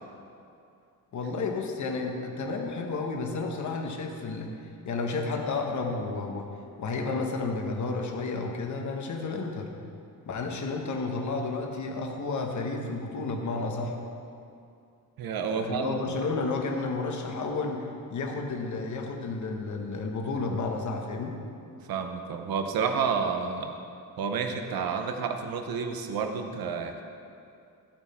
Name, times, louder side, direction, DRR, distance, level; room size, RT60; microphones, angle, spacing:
voice 1, 1.1-4.5 4.8-6.5 6.8-9.7 10.2-13.9 15.5-21.4, left 3 dB, 50° left, 2 dB, 1.3 m, -31 dB
voice 2, 15.2-15.9 21.9-23.8 24.2-27.0, right 6 dB, 70° right, 5 dB, 1.0 m, -30 dB
14.5 x 8.9 x 4.3 m, 2.5 s
wide cardioid pair, 170°, 37 cm